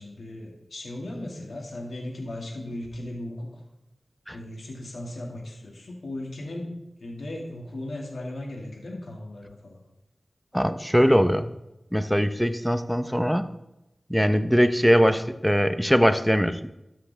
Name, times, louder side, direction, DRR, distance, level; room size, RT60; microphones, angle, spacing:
voice 1, 0.0-3.6 4.3-6.7 7.0-9.8, left 1 dB, 75° left, -1 dB, 2.0 m, -37 dB
voice 2, 10.5-11.5 11.9-13.4 14.1-16.7, equal, ahead, 9 dB, 0.7 m, -21 dB
13.0 x 5.8 x 3.4 m, 0.91 s
cardioid pair, 45°, 0 cm